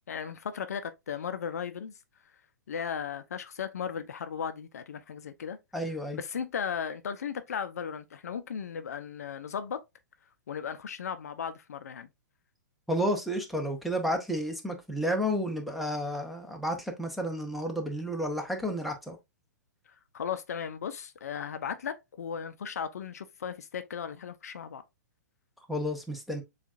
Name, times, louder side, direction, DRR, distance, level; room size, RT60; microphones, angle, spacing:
voice 1, 0.1-1.9 2.7-5.6 6.1-9.8 10.5-12.1 19.9-24.8, left 7 dB, 60° left, 0.5 m, -36 dB
voice 2, 5.7-6.2 12.9-19.2 25.7-26.4, equal, ahead, 0.8 m, -31 dB
7.0 x 2.4 x 2.5 m
figure-of-eight pair, 110°, 10 cm